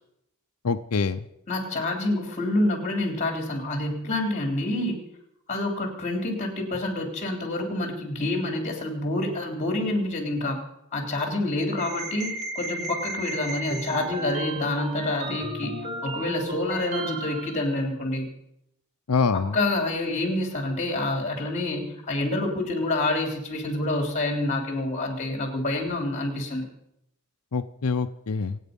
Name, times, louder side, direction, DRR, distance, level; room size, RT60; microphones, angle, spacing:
voice 1, 0.6-1.2 19.1-19.6 27.5-28.6, left 4 dB, 90° left, 8 dB, 0.7 m, -25 dB
voice 2, 1.5-5.0 5.5-10.6 10.9-18.3 19.3-26.7, left 2 dB, 30° left, 3 dB, 3.6 m, -27 dB
sound 1, 11.8-17.6, right 2 dB, 35° right, 1.8 m, -34 dB
26.5 x 9.2 x 5.4 m, 0.78 s
head